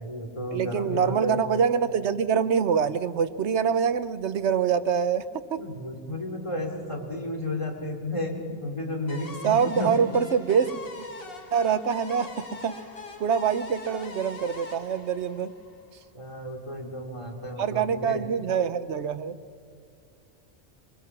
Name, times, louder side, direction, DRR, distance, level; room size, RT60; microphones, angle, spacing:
voice 1, 0.0-1.4 5.6-10.0 16.1-18.2, left 1 dB, 25° left, 1 dB, 3.1 m, -32 dB
voice 2, 0.5-5.2 5.5-5.6 9.4-10.7 11.0-11.1 11.5-12.8 13.2-15.5 17.6-19.4, right 7 dB, 80° right, 13 dB, 1.2 m, -25 dB
sound 1, 9.1-16.0, left 3 dB, 55° left, 1.8 m, -43 dB
25.5 x 21.5 x 6.0 m, 2.2 s
omnidirectional pair, 1.1 m